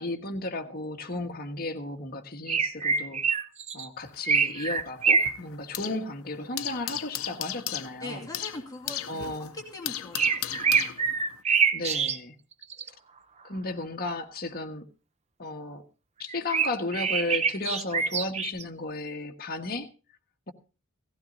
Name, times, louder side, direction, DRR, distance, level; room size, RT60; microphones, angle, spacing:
voice 1, 0.0-3.4 3.7-8.3 9.1-9.5 11.7-12.3 13.4-14.9 15.4-15.8 16.2-19.9, left 2 dB, 45° left, 4 dB, 1.4 m, -34 dB
sound 1, 2.5-3.9 4.3-5.3 10.1-12.2 12.6-12.9 16.3-18.6, right 5 dB, 30° right, 0.7 m, -25 dB
sound 2, 4.0-6.1 6.3-11.4, left 12 dB, 80° left, 0.7 m, -36 dB
voice 2, 8.0-9.3 9.5-10.9, left 2 dB, 15° left, 1 dB, 2.6 m, -41 dB
17.0 x 15.5 x 2.7 m, 0.34 s
head